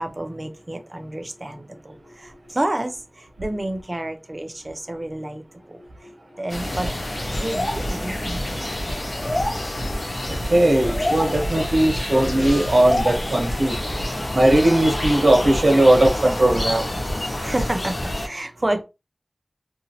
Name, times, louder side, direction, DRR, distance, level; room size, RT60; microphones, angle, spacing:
voice 1, 0.0-3.0 3.4-5.4 5.7-5.8 6.4-6.9 7.4-8.8 17.2-18.8, right 1 dB, 35° right, 0.6 m, -29 dB
sound 1, 6.5-18.3, left 1 dB, 50° left, 0.9 m, -27 dB
voice 2, 10.5-13.8 14.3-16.8, right 1 dB, 70° right, 1.2 m, -18 dB
2.8 x 2.7 x 2.7 m
wide cardioid pair, 45°, 0 cm